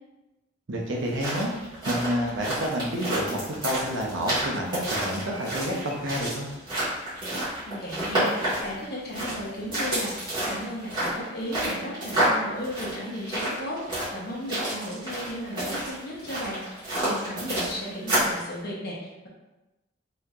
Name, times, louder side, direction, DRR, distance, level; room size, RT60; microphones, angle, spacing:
voice 1, 0.7-1.5 1.8-6.5, equal, 65° right, -1 dB, 0.7 m, -29 dB
sound 1, 0.9-18.4, right 1 dB, 25° right, 1.5 m, -30 dB
voice 2, 7.7-8.4 8.6-19.3, equal, 50° left, -4 dB, 0.9 m, -35 dB
4.1 x 2.7 x 2.4 m, 1.0 s
head